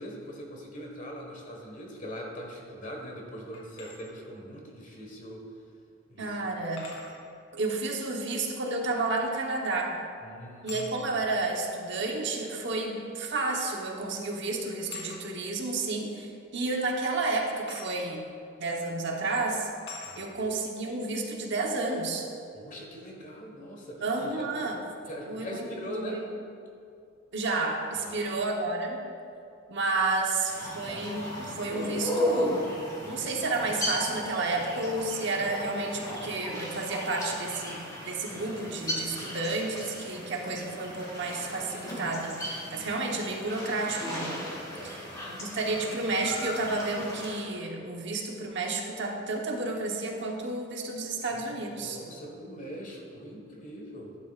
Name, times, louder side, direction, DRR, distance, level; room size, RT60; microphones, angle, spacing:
voice 1, 0.0-5.5 6.1-6.5 10.2-11.2 20.0-20.4 22.5-24.5 25.1-26.3 27.9-28.3 44.7-45.4 51.3-54.2, equal, 40° left, 0 dB, 1.5 m, -42 dB
sound 1, 3.5-4.0 5.5-5.6 6.8-7.2 9.4-9.8 10.7-10.9 12.1-12.2 13.5-13.7 14.0-14.2 14.9-15.2 17.7-17.9 18.7-18.9 19.9-20.2, left 4 dB, 85° left, 2.6 m, -44 dB
voice 2, 6.2-6.9 7.5-10.0 10.6-18.3 18.6-19.7 20.2-22.3 24.0-24.8 25.3-26.2 27.3-29.0 29.7-32.6 33.1-44.4 45.3-52.0, right 3 dB, 60° right, 1 dB, 1.1 m, -31 dB
sound 2, 30.4-47.5, left 1 dB, 20° left, 2.1 m, -36 dB
11.5 x 11.0 x 2.5 m, 2.4 s
head